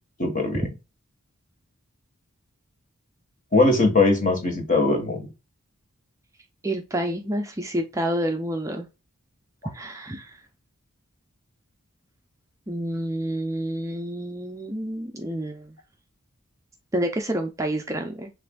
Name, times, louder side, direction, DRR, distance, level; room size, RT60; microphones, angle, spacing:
voice 1, 0.2-0.6 3.5-5.3, left 3 dB, 35° left, 1.4 m, -20 dB
voice 2, 6.6-8.9 9.7-10.4 12.7-15.7 16.9-18.3, right 1 dB, 15° right, 0.4 m, -28 dB
6.6 x 2.5 x 2.2 m
head